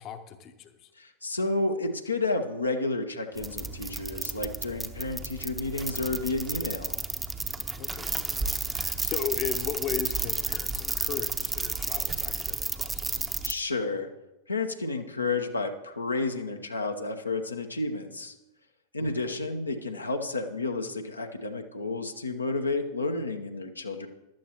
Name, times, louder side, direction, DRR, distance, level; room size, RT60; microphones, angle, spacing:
voice 1, 0.0-0.9 7.8-13.3 19.0-19.1, left 8 dB, 35° left, 9 dB, 0.9 m, -37 dB
voice 2, 1.0-7.0 13.4-14.1 14.5-18.3 18.9-24.1, left 3 dB, 80° left, 4 dB, 1.0 m, -31 dB
sound 1, 3.4-13.5, right 3 dB, 15° right, 0.8 m, -32 dB
15.0 x 12.0 x 3.0 m, 0.97 s
figure-of-eight pair, 90°, 0 cm